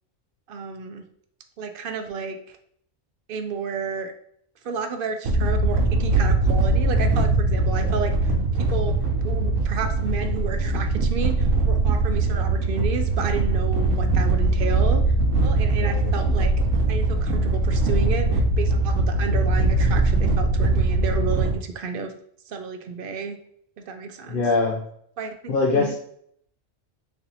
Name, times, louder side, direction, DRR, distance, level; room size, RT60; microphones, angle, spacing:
voice 1, 0.5-1.0 1.6-2.6 3.3-4.1 4.6-8.3 8.6-8.9 9.2-16.5 16.9-22.1 22.5-23.4 23.8-24.4 25.2-25.9, right 5 dB, 60° right, 6 dB, 0.6 m, -31 dB
sound 1, 5.2-21.5, right 2 dB, 90° right, 1.1 m, -21 dB
voice 2, 24.3-24.8 25.5-25.9, left 3 dB, 55° left, -1 dB, 0.6 m, -24 dB
3.3 x 2.7 x 4.0 m, 0.66 s
omnidirectional pair, 1.3 m